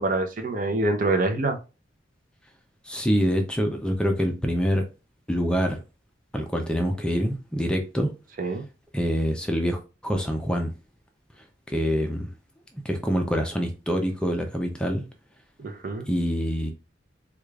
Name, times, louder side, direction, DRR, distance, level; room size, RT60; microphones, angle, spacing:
voice 1, 0.0-1.6 8.4-8.6 15.6-16.1, right 2 dB, 45° right, 0.6 m, -25 dB
voice 2, 2.8-4.8 5.3-5.8 6.3-8.1 8.9-10.7 11.7-12.3 12.8-15.0 16.1-16.7, equal, 5° left, 0.5 m, -25 dB
4.8 x 2.4 x 2.3 m
head